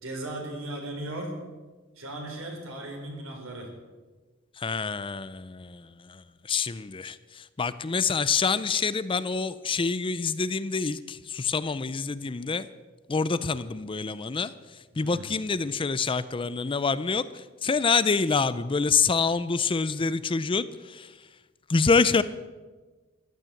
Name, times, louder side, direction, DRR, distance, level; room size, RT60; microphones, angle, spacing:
voice 1, 0.0-1.4 2.0-3.7 14.9-15.3, right 1 dB, 65° right, 2 dB, 4.5 m, -37 dB
voice 2, 4.6-12.7 13.1-21.3 21.7-22.2, left 5 dB, 25° left, 15 dB, 0.5 m, -27 dB
15.0 x 12.0 x 7.7 m, 1.3 s
head